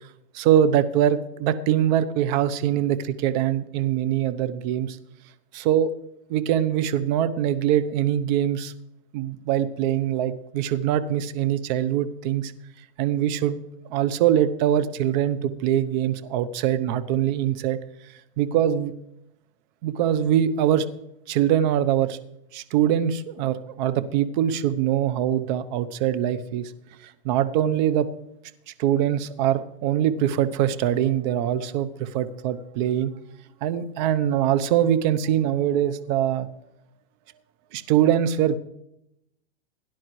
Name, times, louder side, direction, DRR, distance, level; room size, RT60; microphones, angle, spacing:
voice 1, 0.3-5.0 5.5-5.9 6.3-8.7 9.1-12.5 13.0-13.6 13.9-17.8 18.4-18.9 19.8-20.9 21.3-22.2 22.5-26.7 27.0-28.1 28.7-33.1 33.6-36.5 37.7-38.6, right 10 dB, 50° right, 13 dB, 1.0 m, -23 dB
17.5 x 10.5 x 3.2 m, 0.81 s
hypercardioid pair, 130°, 30 cm